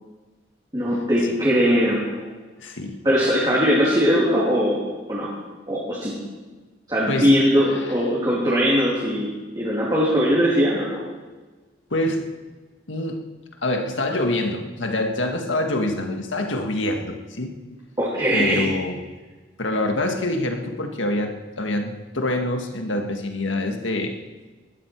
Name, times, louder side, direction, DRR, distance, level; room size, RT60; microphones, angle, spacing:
voice 1, 0.7-2.3 3.0-4.8 5.1-5.3 5.7-6.1 6.9-9.3 9.5-11.0 18.0-18.7, equal, 20° right, -6 dB, 3.0 m, -20 dB
voice 2, 2.6-3.0 7.1-8.0 11.9-12.2 12.9-13.2 13.6-17.5 18.3-19.0 19.6-24.2, left 1 dB, 80° left, 4 dB, 1.7 m, -26 dB
19.5 x 13.0 x 4.7 m, 1.3 s
head